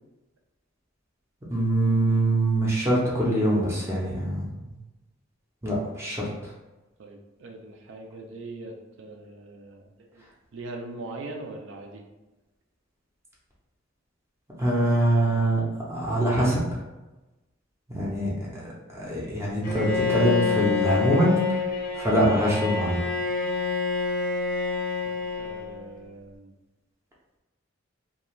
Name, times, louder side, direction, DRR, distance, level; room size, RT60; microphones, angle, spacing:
voice 1, 1.5-4.5 5.6-6.5 14.6-16.8 17.9-21.7 21.9-23.0, right 1 dB, 15° right, -6 dB, 0.5 m, -24 dB
voice 2, 7.0-10.3 10.5-12.0 25.0-26.5, right 2 dB, 65° right, 3 dB, 0.4 m, -41 dB
Bowed string instrument, 19.6-25.9, left 5 dB, 45° left, 0.5 m, -27 dB
2.4 x 2.2 x 3.0 m, 1.1 s
head